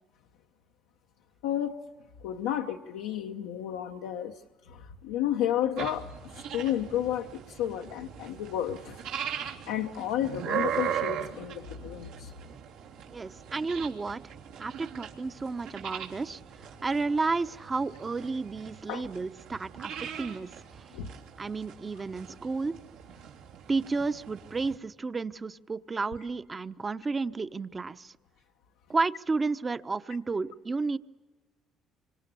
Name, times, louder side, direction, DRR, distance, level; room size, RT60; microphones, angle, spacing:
voice 1, 1.4-1.8 2.2-4.4 4.7-6.1 6.5-9.3 9.7-12.3 18.9-19.1 20.9-21.1, left 11 dB, 90° left, 0.9 m, -32 dB
sound 1, 5.8-24.8, right 9 dB, 85° right, 3.2 m, -39 dB
voice 2, 13.1-14.2 14.6-16.4 16.8-20.9 21.4-22.8 23.7-28.1 28.9-31.0, right 3 dB, 30° right, 1.0 m, -32 dB
27.0 x 25.5 x 7.0 m
supercardioid pair, 70°, 0 cm